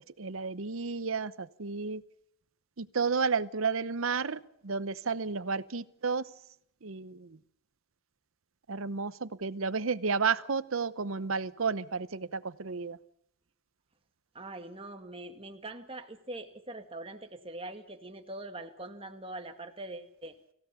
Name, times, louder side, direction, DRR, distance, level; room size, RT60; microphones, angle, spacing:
voice 1, 0.0-2.0 2.8-6.3 6.8-7.4 8.7-13.0, right 5 dB, 85° right, 16 dB, 0.9 m, -32 dB
voice 2, 14.3-20.4, right 2 dB, 25° right, 6 dB, 1.9 m, -43 dB
25.0 x 16.0 x 7.0 m, 0.72 s
head